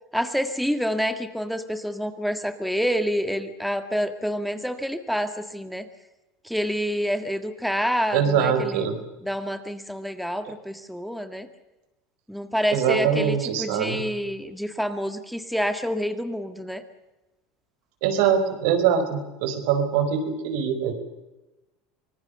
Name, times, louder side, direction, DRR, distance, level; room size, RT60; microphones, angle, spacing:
voice 1, 0.1-5.9 6.4-8.9 9.2-11.5 12.3-16.8, equal, ahead, 8 dB, 1.8 m, -28 dB
voice 2, 8.1-9.0 12.7-14.0 18.0-20.9, right 7 dB, 70° right, 8 dB, 4.6 m, -23 dB
25.0 x 19.0 x 6.8 m, 1.0 s
supercardioid pair, 100°, 0 cm